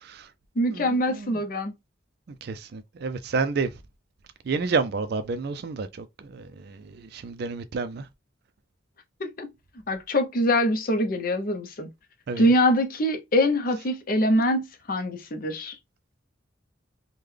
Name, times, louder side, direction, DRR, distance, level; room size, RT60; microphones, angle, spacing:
voice 1, 0.6-1.7 9.2-9.5 9.9-11.9 12.4-15.8, equal, 45° left, 0.7 m, -24 dB
voice 2, 2.4-3.7 4.5-5.9 6.3-8.0 12.3-12.5, right 4 dB, 55° right, 0.4 m, -29 dB
3.6 x 2.2 x 3.2 m
head